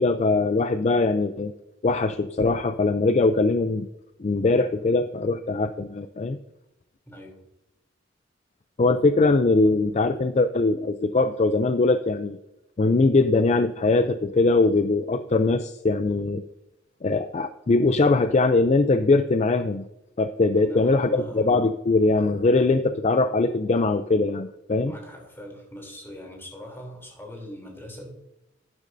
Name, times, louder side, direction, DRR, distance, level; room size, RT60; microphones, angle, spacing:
voice 1, 0.0-1.5 1.8-3.9 4.2-6.4 8.8-12.4 12.8-16.4 17.0-19.8 20.2-24.9, left 3 dB, 35° left, 10 dB, 0.4 m, -21 dB
voice 2, 7.1-7.4 20.6-21.5 24.8-28.1, equal, 10° left, 0 dB, 3.0 m, -41 dB
12.0 x 9.7 x 2.6 m, 0.90 s
head